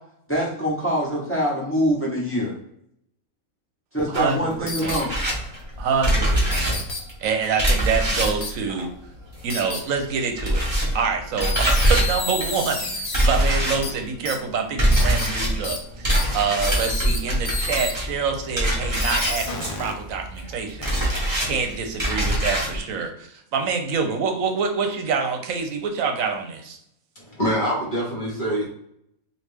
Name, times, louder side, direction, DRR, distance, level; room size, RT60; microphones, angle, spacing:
voice 1, 0.3-2.5 3.9-5.1, equal, 10° left, -5 dB, 0.9 m, -24 dB
sound 1, 4.1-9.7 9.9-22.8, right 1 dB, 20° right, 1.0 m, -24 dB
voice 2, 4.1-5.0 5.8-6.7 7.2-9.0 9.4-10.7 10.9-21.1 21.4-26.8, right 5 dB, 75° right, 4 dB, 1.0 m, -26 dB
sound 2, 4.7-5.0 6.5-7.0 8.2-8.5 9.5-9.8 11.4-13.3 13.8-13.9 14.3-14.4 14.9-15.3 15.6-15.8 16.1-16.2 16.6-17.2 17.5-17.9 19.0-19.9 20.8-21.1, left 3 dB, 55° left, 0.3 m, -30 dB
voice 3, 27.2-28.7, equal, 40° left, -3 dB, 1.1 m, -25 dB
3.2 x 2.5 x 3.3 m, 0.73 s
omnidirectional pair, 1.4 m